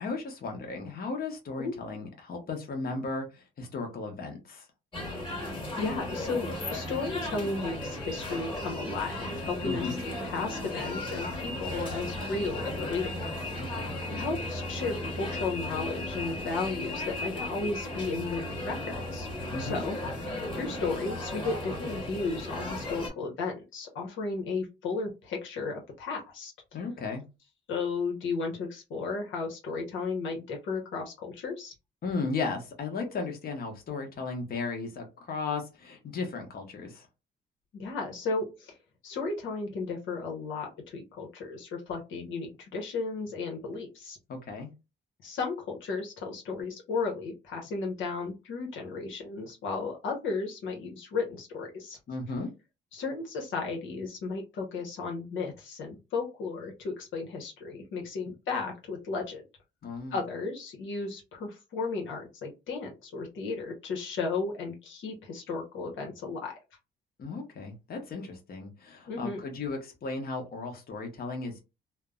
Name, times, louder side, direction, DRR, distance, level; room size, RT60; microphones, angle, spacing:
voice 1, 0.0-4.7 9.6-10.0 13.6-13.9 19.5-19.8 26.7-27.2 32.0-37.1 44.3-44.7 52.1-52.5 59.8-60.2 67.2-71.6, left 3 dB, 50° left, 3 dB, 1.0 m, -35 dB
sound 1, 4.9-23.1, left 1 dB, 25° left, 1.5 m, -35 dB
voice 2, 5.8-10.0 10.2-13.6 14.1-19.3 19.6-26.5 27.7-31.7 37.7-38.8 39.0-44.2 45.2-52.0 52.9-59.4 60.1-66.5 69.1-69.4, left 4 dB, 75° left, 1 dB, 0.9 m, -34 dB
3.2 x 2.0 x 2.3 m, 0.26 s
cardioid pair, 90°, 20 cm